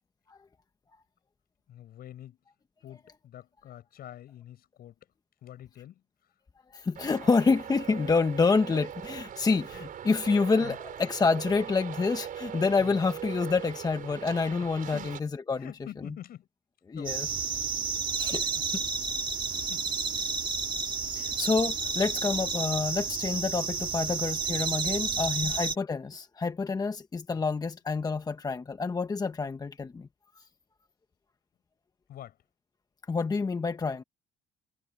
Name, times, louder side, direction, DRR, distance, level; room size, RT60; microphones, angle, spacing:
voice 1, 1.7-2.4 2.8-5.1 5.4-6.0 9.7-9.9 10.3-10.8 12.8-13.0 14.6-15.1 15.6-16.5 17.0-17.4 19.5-20.3 20.8-20.9 24.0-24.2 25.1-25.6 32.1-32.4, left 11 dB, 65° left, 7.5 m, -47 dB
voice 2, 6.7-15.7 16.0-16.1 16.9-17.3 18.2-18.5 19.5-19.6 21.2-30.1 33.1-34.0, left 4 dB, 20° left, 1.1 m, -28 dB
Traffic noise roadway noise, 7.0-15.2, right 9 dB, 55° right, 5.2 m, -41 dB
sound 1, 17.1-25.8, right 5 dB, 25° right, 1.8 m, -31 dB
cardioid pair, 110°, 17 cm